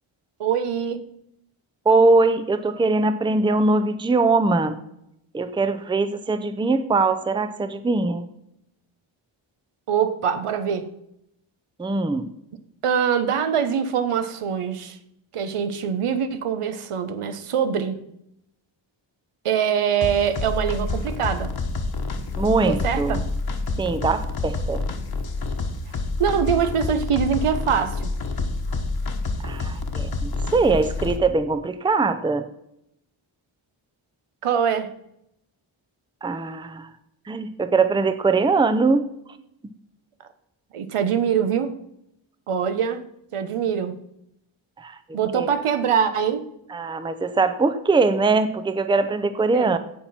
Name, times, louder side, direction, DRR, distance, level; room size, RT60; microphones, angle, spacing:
voice 1, 0.4-1.1 9.9-10.9 12.8-15.0 15.3-18.0 19.4-21.5 22.6-23.3 26.2-28.1 34.4-34.9 40.7-41.7 42.5-43.0 43.3-44.0 45.1-46.4 49.5-49.7, right 7 dB, 85° right, 10 dB, 1.2 m, -23 dB
voice 2, 1.9-4.8 5.3-8.3 11.8-12.3 22.4-23.2 23.8-24.8 29.4-32.4 36.2-36.9 37.3-39.1 44.8-45.0 45.3-45.5 46.7-49.8, right 3 dB, 10° right, 10 dB, 0.5 m, -21 dB
sound 1, 20.0-31.2, left 3 dB, 45° left, 1.3 m, -28 dB
16.0 x 5.9 x 4.3 m, 0.79 s
wide cardioid pair, 180°, 50 cm